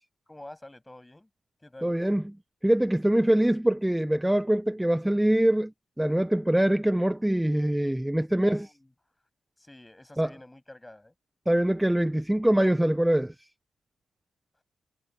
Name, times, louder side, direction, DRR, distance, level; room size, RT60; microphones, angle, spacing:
voice 1, 0.3-1.3 1.6-1.9 8.4-8.9 9.6-11.1, left 1 dB, 10° left, 7.9 m, -48 dB
voice 2, 1.8-2.2 2.6-5.7 6.0-8.7 10.2-10.3 11.5-13.3, right 1 dB, 5° right, 1.0 m, -23 dB
cardioid pair, 115°, 0 cm